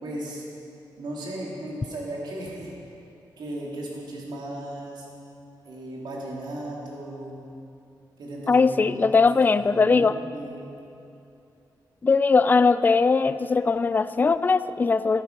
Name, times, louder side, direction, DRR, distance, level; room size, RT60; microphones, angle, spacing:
voice 1, 0.0-0.4 1.0-2.7 3.4-5.1 5.6-7.3 8.2-9.4 9.7-10.7, right 1 dB, 70° right, -4 dB, 3.3 m, -36 dB
voice 2, 8.5-10.2 12.0-15.2, left 4 dB, 25° left, 13 dB, 0.3 m, -20 dB
13.5 x 11.5 x 5.4 m, 2.7 s
wide cardioid pair, 110°, 8 cm